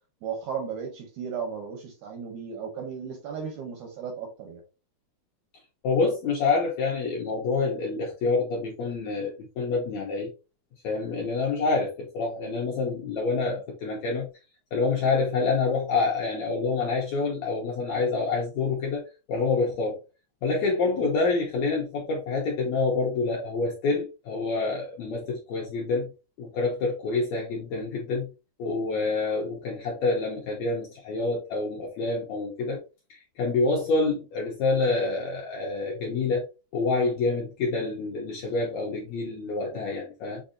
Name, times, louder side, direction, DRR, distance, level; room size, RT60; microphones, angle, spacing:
voice 1, 0.2-4.6 21.0-21.1 39.7-39.8, right 6 dB, 75° right, 1.8 m, -35 dB
voice 2, 5.8-10.3 10.8-14.3 14.7-19.0 19.3-20.0 20.4-26.1 26.4-28.3 28.6-32.8 33.1-36.5 36.7-40.4, left 3 dB, 75° left, 1.6 m, -27 dB
7.1 x 2.6 x 2.6 m
omnidirectional pair, 4.3 m